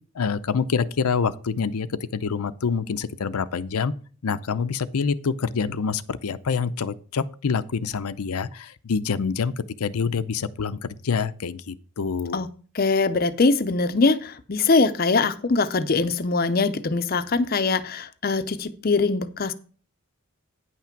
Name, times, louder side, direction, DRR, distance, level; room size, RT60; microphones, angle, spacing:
voice 1, 0.2-1.9 2.1-3.9 4.2-9.5 9.8-12.4, left 5 dB, 90° left, 0.6 m, -26 dB
voice 2, 12.7-19.5, left 3 dB, 40° left, 0.5 m, -22 dB
9.6 x 5.8 x 5.9 m
head